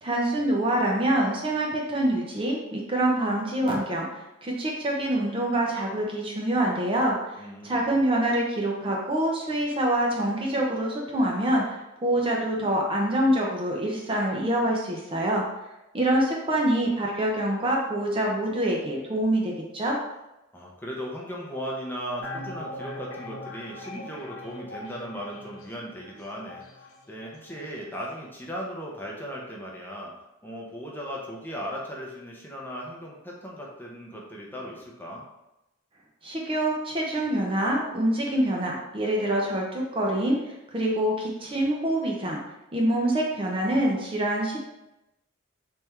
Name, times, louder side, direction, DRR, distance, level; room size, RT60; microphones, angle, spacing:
voice 1, 0.0-11.6 12.0-15.4 15.9-20.0 36.2-42.4 42.7-44.6, right 1 dB, 25° right, -2 dB, 0.6 m, -25 dB
voice 2, 7.4-8.0 20.5-30.1 30.4-35.2, equal, 10° left, -3 dB, 0.7 m, -37 dB
sound 1, 22.2-27.8 28.1-28.2, left 2 dB, 80° left, 0.7 m, -41 dB
3.5 x 3.3 x 4.4 m, 0.92 s
head